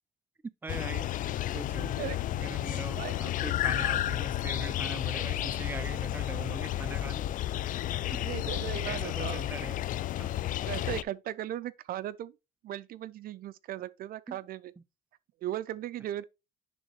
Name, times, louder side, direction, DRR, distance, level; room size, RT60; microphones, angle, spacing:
voice 1, 0.6-1.1 1.5-2.0 2.3-7.2 8.9-9.8 10.2-10.4 14.3-14.4 14.8-14.9, right 2 dB, 10° right, 0.5 m, -41 dB
sound 1, 0.7-11.0, left 13 dB, 55° left, 0.4 m, -32 dB
voice 2, 8.2-9.5 10.7-12.3 12.6-14.7 15.4-16.3, right 12 dB, 60° right, 0.5 m, -37 dB
10.0 x 3.7 x 3.1 m
cardioid pair, 110°, 17 cm